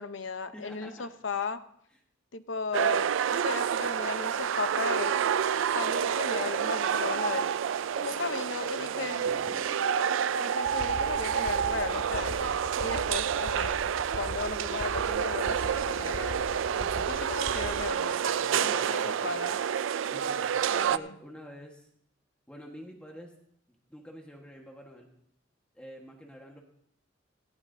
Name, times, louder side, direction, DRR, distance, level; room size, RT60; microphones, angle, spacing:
voice 1, 0.0-1.6 2.3-5.2 5.7-7.5 8.0-9.3 10.4-13.8 14.2-16.5 17.1-19.7 20.7-21.1, left 4 dB, 75° left, 11 dB, 0.8 m, -36 dB
voice 2, 0.5-1.1 8.8-9.4 16.8-17.2 18.3-19.3 20.1-21.9 22.5-23.3 23.7-25.1 25.7-26.6, equal, 5° left, 0 dB, 1.4 m, -47 dB
sound 1, 2.7-21.0, right 8 dB, 85° right, 0.4 m, -29 dB
sound 2, 3.4-21.1, equal, 15° right, 2.8 m, -56 dB
sound 3, 10.7-17.9, left 2 dB, 45° left, 0.5 m, -41 dB
17.5 x 15.0 x 2.7 m, 0.71 s
head